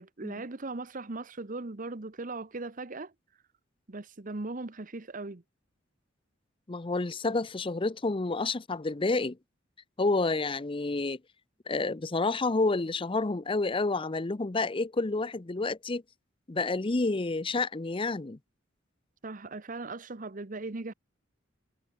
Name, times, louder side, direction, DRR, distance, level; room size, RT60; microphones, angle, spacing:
voice 1, 0.0-3.1 3.9-5.4 19.2-20.9, right 3 dB, 45° right, 1.0 m, -38 dB
voice 2, 6.7-9.4 10.0-11.2 11.7-16.0 16.5-18.4, left 3 dB, 30° left, 0.6 m, -29 dB
head